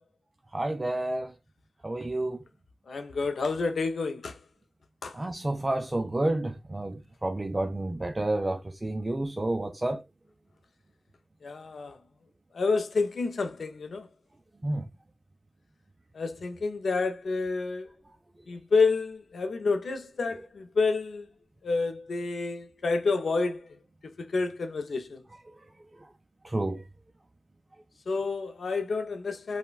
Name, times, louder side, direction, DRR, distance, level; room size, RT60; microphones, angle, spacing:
voice 1, 0.5-1.3 1.8-2.4 5.1-10.0 14.6-14.9 26.4-26.8, right 1 dB, 20° right, 0.3 m, -30 dB
voice 2, 2.9-4.4 5.0-5.2 11.4-12.0 12.5-14.1 16.1-17.9 18.5-21.3 21.6-23.7 24.0-25.2 28.1-29.6, left 4 dB, 70° left, 0.4 m, -29 dB
3.1 x 2.1 x 2.3 m
wide cardioid pair, 120°, 0 cm